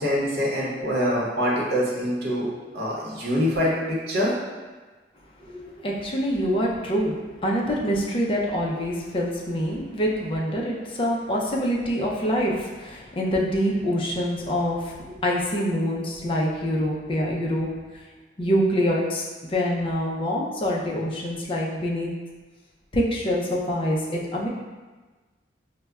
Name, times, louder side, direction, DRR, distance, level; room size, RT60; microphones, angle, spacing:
voice 1, 0.0-4.3, equal, 65° right, -6 dB, 0.7 m, -25 dB
voice 2, 5.4-17.7 18.4-22.1 22.9-24.5, equal, 30° left, -2 dB, 0.4 m, -25 dB
4.7 x 2.1 x 2.2 m, 1.3 s
head